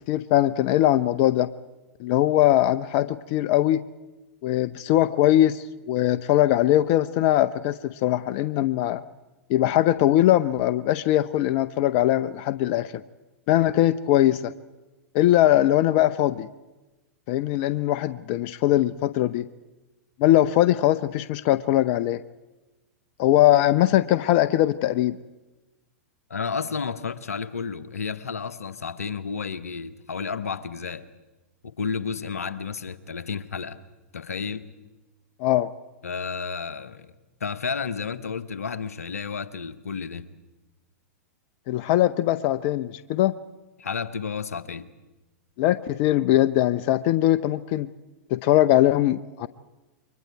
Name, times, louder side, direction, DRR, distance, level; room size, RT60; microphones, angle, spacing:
voice 1, 0.1-1.5 2.0-3.8 4.4-9.0 9.5-12.9 13.5-14.5 15.1-16.5 17.3-19.5 20.2-22.2 23.2-25.2 35.4-35.7 41.7-43.3 45.6-47.9 48.3-49.5, left 14 dB, 45° left, 15 dB, 0.7 m, -21 dB
voice 2, 26.3-31.1 31.6-33.8 34.1-34.6 36.0-37.1 37.4-40.2 43.8-44.9, left 5 dB, 80° left, 14 dB, 1.1 m, -31 dB
29.0 x 23.5 x 4.7 m, 1.1 s
hypercardioid pair, 105°, 8 cm